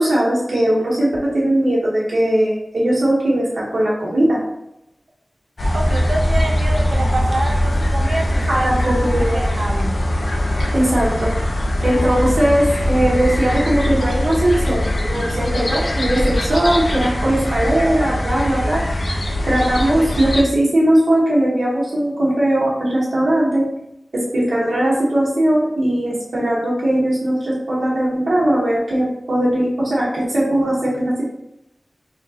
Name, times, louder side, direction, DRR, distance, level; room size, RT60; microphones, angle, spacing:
voice 1, 0.0-4.4 8.5-9.4 10.6-11.3 11.8-19.2 19.4-23.7 24.1-31.2, right 1 dB, 80° right, -6 dB, 1.0 m, -19 dB
sound 1, 5.6-20.4, left 1 dB, 55° left, 0.8 m, -21 dB
voice 2, 5.7-8.7 9.2-10.0, right 2 dB, 55° right, 2 dB, 0.6 m, -26 dB
5.1 x 2.9 x 2.7 m, 0.87 s
wide cardioid pair, 90°, 0 cm